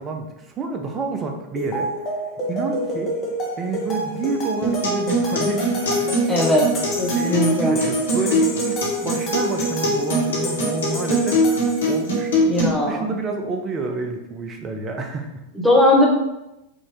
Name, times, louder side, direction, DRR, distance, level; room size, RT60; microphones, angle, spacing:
voice 1, 0.0-1.9 2.5-3.2 3.6-6.2 7.1-15.4, right 3 dB, 25° right, 4 dB, 0.7 m, -29 dB
sound 1, 1.6-12.2, equal, 30° left, 1.2 m, -29 dB
Acoustic guitar, 4.6-12.6, equal, 65° left, 1.1 m, -22 dB
voice 2, 6.3-6.7 7.0-7.8 12.5-13.1 15.5-16.1, left 1 dB, ahead, -3 dB, 1.1 m, -18 dB
5.2 x 2.9 x 3.4 m, 0.93 s
figure-of-eight pair, 90°, 0 cm